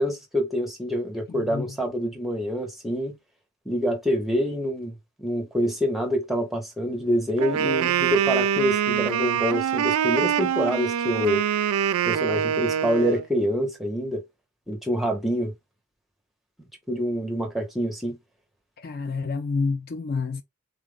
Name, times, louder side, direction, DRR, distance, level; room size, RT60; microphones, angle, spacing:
voice 1, 0.0-3.2 3.6-11.5 12.1-14.2 14.7-15.5 16.9-18.2, equal, ahead, 0.9 m, -26 dB
voice 2, 1.3-1.6 18.8-20.4, left 4 dB, 45° left, 0.4 m, -28 dB
Wind instrument woodwind instrument, 7.4-13.3, right 9 dB, 80° right, 0.3 m, -24 dB
3.9 x 2.4 x 3.6 m
head